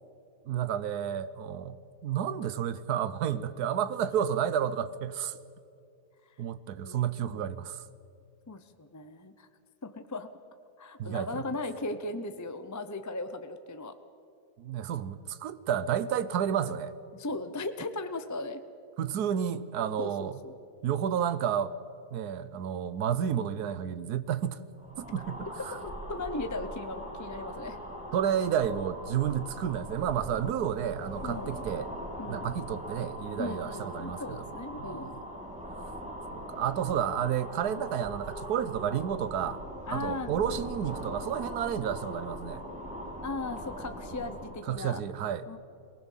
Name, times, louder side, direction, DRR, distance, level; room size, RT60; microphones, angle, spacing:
voice 1, 0.5-1.8 2.0-5.4 6.4-7.9 11.0-11.4 14.6-16.9 19.0-20.4 20.8-21.7 22.1-24.6 25.0-25.8 28.1-31.9 32.3-34.4 34.8-35.2 36.3-39.6 39.9-42.6 44.7-45.4, right 9 dB, 75° right, 14 dB, 1.3 m, -31 dB
voice 2, 6.8-7.4 8.5-9.5 9.8-10.3 10.8-13.9 17.1-18.6 20.0-20.5 25.7-27.8 31.2-31.6 32.2-32.5 33.4-35.2 39.9-40.3 43.2-45.0 45.5-45.6, left 2 dB, 20° left, 9 dB, 0.4 m, -37 dB
sound 1, 24.8-44.6, equal, 5° right, 2.7 m, -41 dB
22.5 x 19.5 x 7.4 m, 2.4 s
omnidirectional pair, 1.7 m